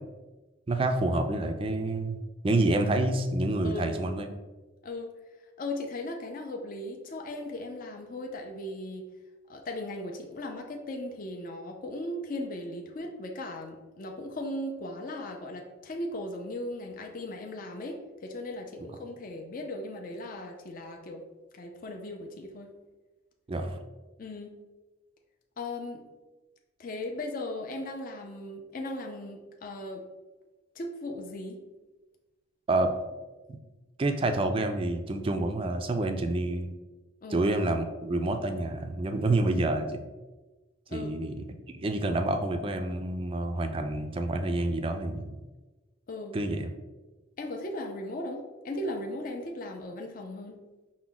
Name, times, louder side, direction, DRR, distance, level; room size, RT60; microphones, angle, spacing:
voice 1, 0.7-2.2 2.4-4.3 23.5-23.8 32.7-32.9 34.0-36.7 37.3-40.0 40.9-41.3 41.7-45.4 46.3-46.7, right 2 dB, 25° right, 6 dB, 0.3 m, -28 dB
voice 2, 3.6-4.0 4.8-5.1 5.6-9.1 9.5-21.2 21.5-22.7 24.2-24.5 25.6-26.1 26.8-30.0 30.7-31.6 37.2-37.5 40.9-41.1 46.1-46.4 47.4-50.6, left 1 dB, 45° left, 2 dB, 0.4 m, -37 dB
5.8 x 2.1 x 3.8 m, 1.2 s
head